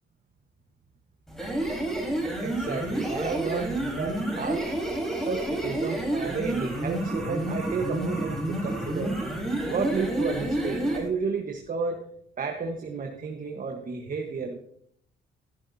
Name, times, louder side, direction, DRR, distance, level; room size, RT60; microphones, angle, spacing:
sound 1, 1.3-11.1, right 1 dB, ahead, 4.2 m, -29 dB
voice 1, 2.4-4.7 5.2-9.1 9.7-12.0 12.4-14.6, right 5 dB, 45° right, 3 dB, 1.4 m, -32 dB
14.0 x 12.0 x 2.8 m, 0.68 s
cardioid pair, 90°, 20 cm